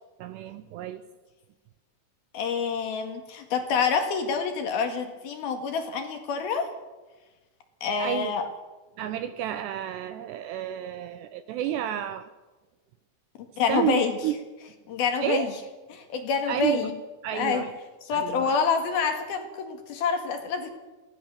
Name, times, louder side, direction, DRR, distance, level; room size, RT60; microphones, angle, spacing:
voice 1, 0.2-1.0 8.0-8.3 9.0-12.3 13.7-14.3 15.2-15.5 16.5-16.9 17.2-17.7 18.1-18.6, right 11 dB, 75° right, 11 dB, 2.7 m, -31 dB
voice 2, 2.3-6.7 7.8-8.4 13.6-14.2 14.9-15.5 15.9-16.9 17.3-17.7 18.1-20.7, left 5 dB, 60° left, 6 dB, 3.4 m, -27 dB
23.5 x 18.0 x 6.9 m, 1.2 s
omnidirectional pair, 5.4 m